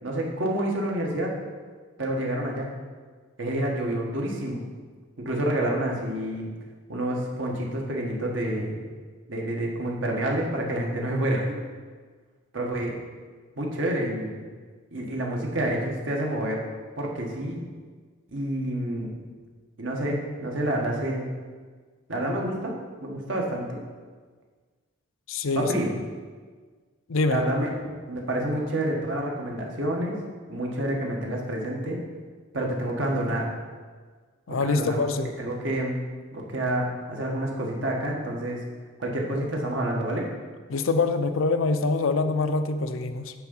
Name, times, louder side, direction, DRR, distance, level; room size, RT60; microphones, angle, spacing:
voice 1, 0.0-1.3 2.0-2.7 3.4-4.6 5.2-6.5 6.9-8.7 9.3-11.6 12.5-12.9 13.6-14.4 14.9-16.6 17.0-17.6 18.3-19.2 19.8-21.3 22.1-22.7 23.0-23.8 25.5-25.9 27.3-30.1 30.5-32.0 32.5-33.5 34.5-35.0 35.4-36.0 36.3-38.6 39.0-40.3, right 1 dB, 65° right, -1 dB, 1.6 m, -28 dB
voice 2, 25.3-25.7 27.1-27.4 34.5-35.3 40.7-43.3, left 3 dB, 75° left, 8 dB, 0.6 m, -25 dB
9.6 x 3.8 x 7.1 m, 1.5 s
head